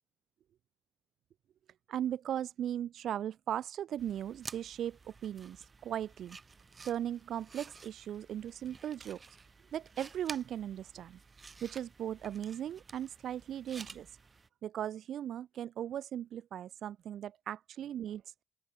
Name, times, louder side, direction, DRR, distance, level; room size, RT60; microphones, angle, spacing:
voice 1, 1.9-6.4 6.8-9.2 9.7-11.2 11.6-14.2 14.6-18.2, right 10 dB, 70° right, 2.0 m, -38 dB
sound 1, 4.0-14.5, right 4 dB, 30° right, 8.0 m, -52 dB
open air
cardioid pair, 90°, 0 cm